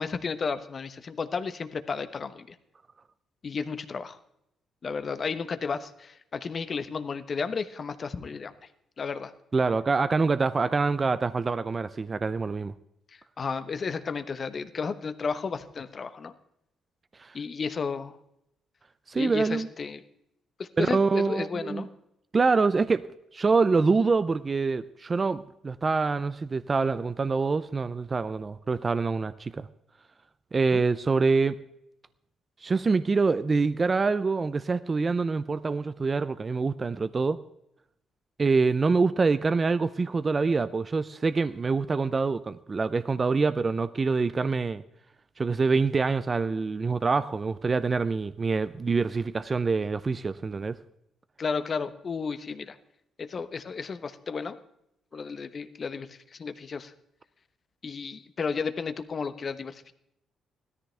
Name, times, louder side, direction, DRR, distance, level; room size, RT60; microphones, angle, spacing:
voice 1, 0.0-2.6 3.4-4.2 4.8-8.5 9.0-9.3 13.1-16.3 17.3-18.2 19.1-20.0 20.6-21.9 30.7-30.8 51.4-52.8 53.2-54.6 55.1-56.9 57.8-59.9, left 5 dB, 40° left, 11 dB, 1.1 m, -33 dB
voice 2, 9.5-12.7 17.2-17.3 19.1-19.7 20.8-21.9 22.3-23.0 23.3-29.7 30.5-31.6 32.6-37.4 38.4-44.8 45.4-50.8, right 4 dB, 30° right, 14 dB, 0.5 m, -25 dB
17.0 x 13.5 x 3.4 m, 0.79 s
cardioid pair, 90°, 0 cm